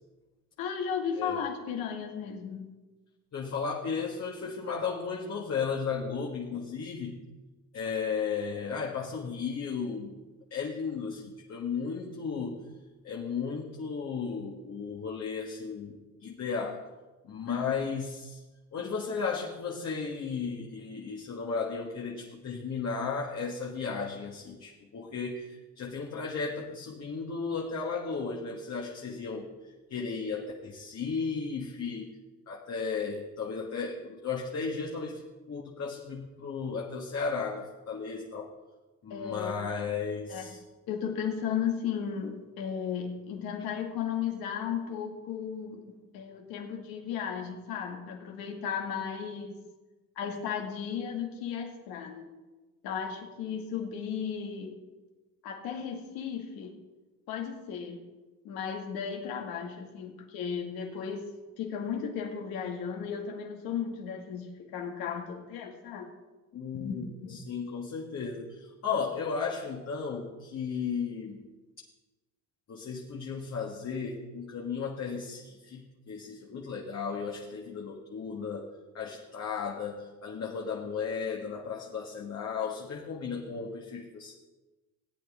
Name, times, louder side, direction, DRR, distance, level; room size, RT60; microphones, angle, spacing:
voice 1, 0.6-2.7 17.5-17.7 39.1-39.6 40.3-40.5 40.9-49.6 50.2-52.3 52.8-54.8 55.4-56.8 57.3-58.0 58.4-61.3 61.6-66.1 66.7-67.4, left 7 dB, 75° left, 2 dB, 2.2 m, -35 dB
voice 2, 3.3-7.2 7.7-10.1 10.5-12.6 13.0-16.8 17.2-18.4 18.7-29.5 29.9-32.1 32.5-38.5 39.0-40.6 66.5-71.4 72.7-78.7 78.9-84.3, left 5 dB, 45° left, -2 dB, 1.8 m, -35 dB
16.5 x 8.9 x 3.8 m, 1.2 s
supercardioid pair, 85°, 35 cm